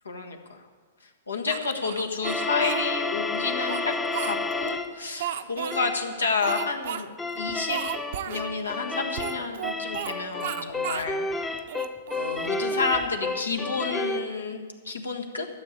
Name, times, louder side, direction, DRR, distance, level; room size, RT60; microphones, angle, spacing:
voice 1, 0.0-0.6 1.3-3.9 4.2-7.1 7.4-7.8 8.3-11.6 12.1-15.5, left 4 dB, 90° left, 3 dB, 1.5 m, -30 dB
Speech, 1.5-2.9 3.4-4.7 5.2-5.8 6.4-7.0 7.3-7.4 7.7-8.4 9.1-10.1 10.4-11.1 11.6-13.0, right 10 dB, 60° right, 0.6 m, -34 dB
sound 1, 2.2-5.0 5.7-6.0 6.5-6.8 7.2-14.3, left 3 dB, 10° left, 0.7 m, -31 dB
13.0 x 7.1 x 8.3 m, 1.5 s
hypercardioid pair, 115°, 0 cm